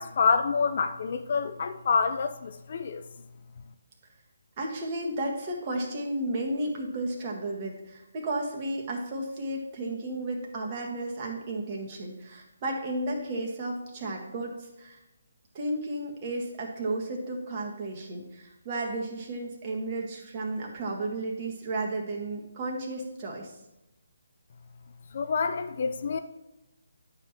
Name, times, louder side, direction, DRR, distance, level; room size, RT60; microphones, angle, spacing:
voice 1, 0.0-3.3 25.1-26.2, left 5 dB, 45° left, 8 dB, 0.6 m, -27 dB
voice 2, 4.6-15.0 15.6-23.5, right 2 dB, 30° right, -1 dB, 1.6 m, -33 dB
10.5 x 5.6 x 3.0 m, 0.98 s
figure-of-eight pair, 145°, 0 cm